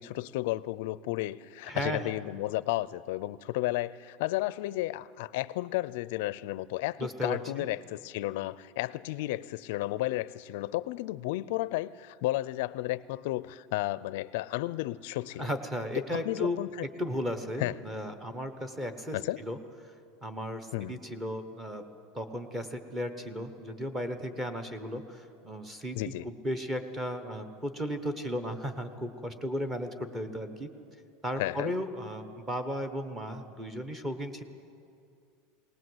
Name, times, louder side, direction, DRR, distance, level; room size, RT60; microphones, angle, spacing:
voice 1, 0.0-15.5 16.1-16.9 17.6-17.7 19.1-19.4 20.7-21.0 25.9-26.3 31.4-31.7, left 17 dB, 60° left, 18 dB, 0.5 m, -33 dB
voice 2, 1.7-2.1 7.0-7.7 15.4-16.6 17.0-19.6 19.8-19.9 20.2-21.8 22.1-30.7 31.2-34.4, equal, 10° right, 8 dB, 1.1 m, -35 dB
19.5 x 19.0 x 7.9 m, 2.5 s
supercardioid pair, 170°, 0 cm